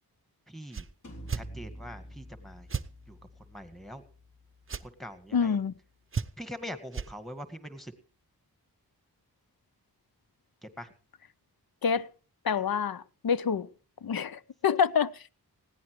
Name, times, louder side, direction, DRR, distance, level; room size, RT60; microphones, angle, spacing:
voice 1, 0.5-0.9 1.3-2.7 3.1-4.0 4.8-5.6 6.4-7.9 10.6-10.9, equal, ahead, 1.9 m, -43 dB
sound 1, 0.7-0.9 1.3-1.5 2.7-2.9 4.7-4.9 6.1-6.5 6.9-7.1, right 6 dB, 35° right, 0.6 m, -33 dB
sound 2, 1.0-6.7, right 1 dB, 50° left, 3.5 m, -49 dB
voice 2, 5.3-5.7 11.8-12.1 12.4-13.7 14.0-15.3, left 7 dB, 70° left, 0.8 m, -27 dB
20.0 x 16.5 x 3.2 m
wide cardioid pair, 95°, 37 cm